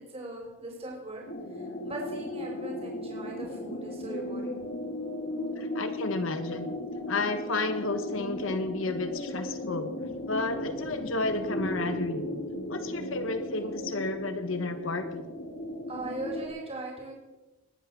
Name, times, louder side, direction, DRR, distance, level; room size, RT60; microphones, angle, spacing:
voice 1, 0.1-4.5 15.9-17.1, right 2 dB, 30° right, -1 dB, 4.0 m, -39 dB
sound 1, 1.3-16.5, left 1 dB, 50° left, 2.5 m, -36 dB
voice 2, 5.6-6.8 7.1-9.9 10.3-12.3 12.7-15.2, left 2 dB, 70° left, 8 dB, 1.3 m, -32 dB
20.0 x 8.5 x 6.1 m, 1.1 s
head